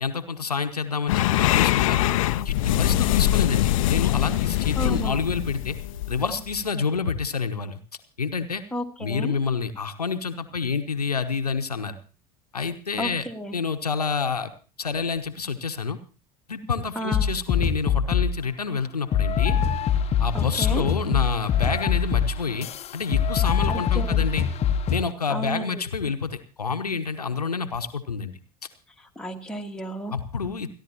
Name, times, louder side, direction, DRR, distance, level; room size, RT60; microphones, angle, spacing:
voice 1, 0.0-2.0 2.4-5.8 6.1-7.8 8.2-8.6 9.0-12.0 12.5-13.2 13.5-14.5 14.8-16.0 16.5-19.6 20.2-22.7 22.9-24.5 24.9-28.3 30.1-30.7, left 5 dB, 80° left, 7 dB, 1.0 m, -28 dB
sound 1, 1.1-6.6, left 14 dB, 60° left, 0.6 m, -23 dB
voice 2, 4.8-5.2 8.7-9.4 13.0-13.6 17.0-17.3 20.3-20.9 23.7-24.3 25.3-25.8 29.0-30.2, equal, 5° left, 2 dB, 1.7 m, -32 dB
sound 2, 17.1-18.4 19.1-25.1, left 7 dB, 35° left, 1.0 m, -23 dB
29.0 x 11.0 x 2.9 m, 0.36 s
figure-of-eight pair, 70°, 19 cm